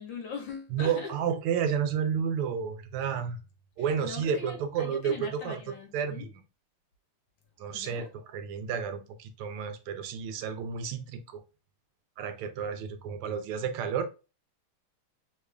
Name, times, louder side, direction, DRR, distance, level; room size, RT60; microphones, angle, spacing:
voice 1, 0.0-1.1 4.0-6.3 7.7-8.1, left 5 dB, 65° left, 1.4 m, -41 dB
voice 2, 0.7-3.4 3.8-5.6 5.9-6.3 7.6-11.4 12.2-14.1, right 7 dB, 85° right, 1.5 m, -31 dB
3.6 x 2.4 x 3.2 m
omnidirectional pair, 2.4 m